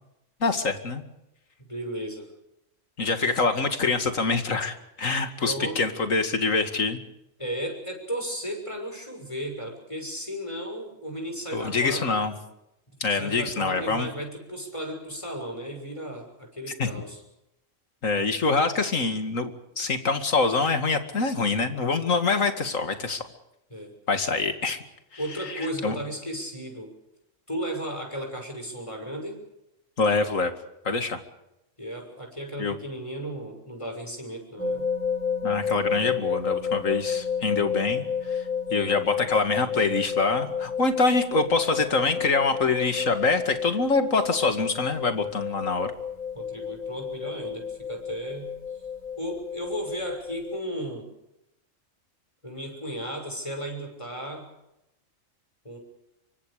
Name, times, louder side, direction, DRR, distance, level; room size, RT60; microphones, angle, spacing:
voice 1, 0.4-1.0 3.0-7.0 11.5-12.3 13.0-14.1 16.8-16.9 18.0-23.3 24.1-24.8 25.5-26.0 30.0-30.5 30.8-31.2 32.6-32.7 35.4-45.9, left 3 dB, 90° left, 7 dB, 2.6 m, -25 dB
voice 2, 1.6-2.3 5.4-5.9 7.4-12.2 13.1-17.2 23.7-23.9 25.2-26.9 27.5-29.4 31.8-34.9 46.3-48.5 49.2-51.0 52.4-54.5 55.6-55.8, equal, 25° left, 2 dB, 6.3 m, -35 dB
sound 1, 34.6-50.6, left 7 dB, 85° right, 4.2 m, -31 dB
26.0 x 24.5 x 5.1 m, 0.88 s
omnidirectional pair, 1.3 m